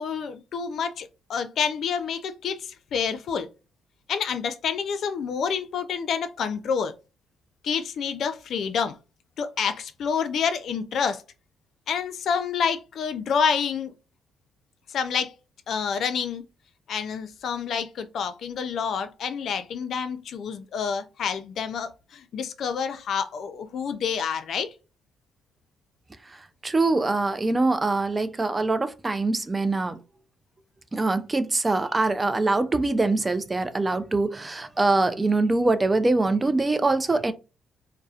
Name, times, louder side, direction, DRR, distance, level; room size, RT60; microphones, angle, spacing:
voice 1, 0.0-3.5 4.1-6.9 7.6-9.0 9.4-11.2 11.9-13.9 14.9-15.3 15.7-16.4 16.9-24.7, left 6 dB, 65° left, 0.3 m, -28 dB
voice 2, 26.6-30.0 30.9-37.3, right 2 dB, 20° right, 0.3 m, -23 dB
2.6 x 2.0 x 2.4 m
cardioid pair, 90°, 0 cm